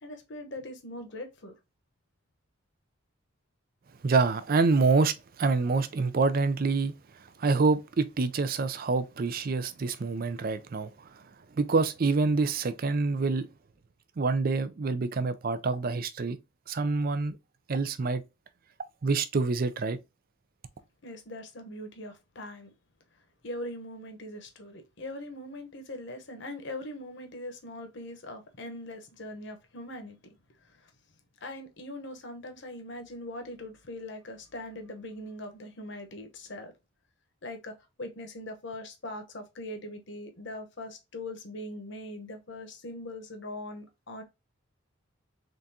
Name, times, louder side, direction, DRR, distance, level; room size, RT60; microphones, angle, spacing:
voice 1, 0.0-1.5 21.0-22.7 23.4-30.2 30.6-30.9 31.4-36.7 37.4-44.2, left 1 dB, 60° left, 1.0 m, -41 dB
voice 2, 4.0-6.9 7.2-13.5 14.2-16.4 16.7-17.4 17.7-18.2 19.0-20.0, right 4 dB, 45° right, 0.4 m, -27 dB
3.8 x 3.5 x 2.7 m
head